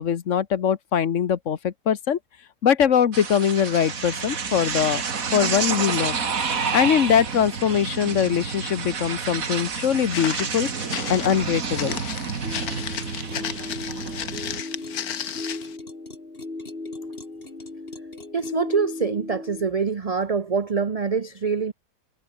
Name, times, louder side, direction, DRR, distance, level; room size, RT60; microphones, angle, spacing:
voice 1, 0.0-2.2 2.6-5.0 5.3-6.2 6.7-10.7 11.1-12.0, left 8 dB, 55° left, 1.3 m, -22 dB
sound 1, 3.1-14.6, right 5 dB, 65° right, 2.3 m, -29 dB
Walk footsteps, 10.1-15.8, left 9 dB, 75° left, 1.7 m, -34 dB
sound 2, 12.4-19.7, left 2 dB, 40° left, 3.6 m, -36 dB
voice 2, 18.3-21.7, right 5 dB, 35° right, 0.7 m, -25 dB
omnidirectional pair, 1.6 m